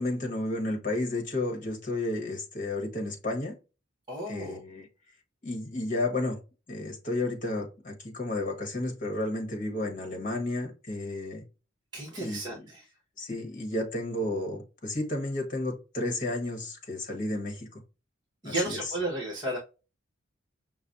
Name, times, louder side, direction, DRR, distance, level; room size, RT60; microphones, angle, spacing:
voice 1, 0.0-3.5 4.3-4.9 5.4-6.4 6.7-11.4 12.2-12.7 13.2-17.8 18.4-18.8, left 2 dB, 40° left, 1.1 m, -32 dB
voice 2, 4.1-4.6 11.9-12.9 18.4-19.6, right 2 dB, 20° right, 1.2 m, -33 dB
5.7 x 2.1 x 2.5 m
head